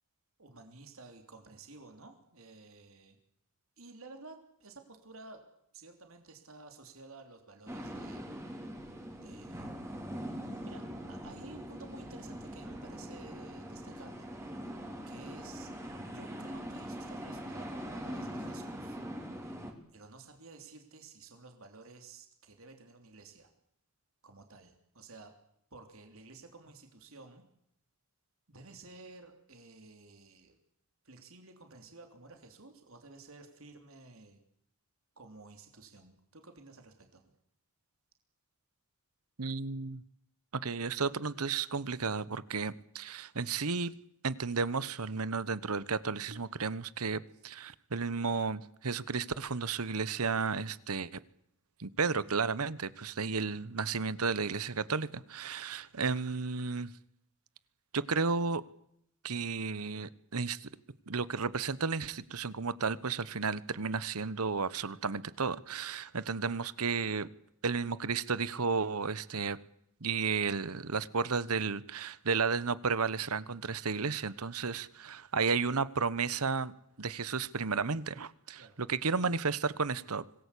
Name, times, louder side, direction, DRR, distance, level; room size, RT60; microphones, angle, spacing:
voice 1, 0.4-3.2 3.8-5.4 5.7-8.2 9.2-9.7 10.5-14.3 15.1-15.7 16.1-19.0 19.9-23.5 24.2-25.3 25.7-27.5 28.5-30.6 31.0-34.4 35.2-37.2 78.6-78.8, right 3 dB, 65° right, 3.4 m, -53 dB
sound 1, 7.7-19.7, equal, 10° right, 3.5 m, -42 dB
voice 2, 39.4-40.0 40.6-43.9 44.2-51.1 51.8-56.9 57.9-58.6 59.2-60.7 61.1-67.3 67.6-69.6 70.0-76.7 77.0-80.3, right 5 dB, 85° right, 1.1 m, -33 dB
25.5 x 19.5 x 8.5 m
head